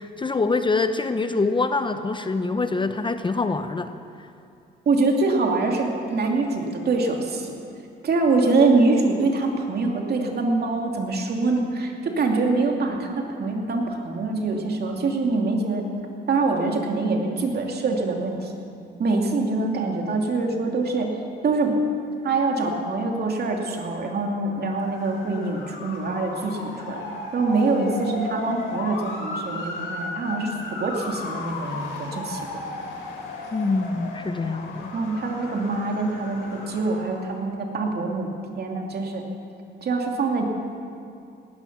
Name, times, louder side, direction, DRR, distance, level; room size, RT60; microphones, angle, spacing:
voice 1, 0.0-4.3 33.5-34.9, left 3 dB, 25° left, 9 dB, 0.7 m, -25 dB
voice 2, 4.9-7.5 8.0-15.9 16.3-18.5 19.0-21.1 21.4-21.8 22.2-27.0 27.3-32.6 34.9-38.3 38.6-39.2 39.8-40.5, right 3 dB, 55° right, 1 dB, 2.6 m, -24 dB
Motor vehicle (road) / Siren, 24.7-37.4, left 2 dB, 75° left, 3.3 m, -35 dB
18.0 x 13.0 x 6.1 m, 2.5 s
cardioid pair, 90°, 20 cm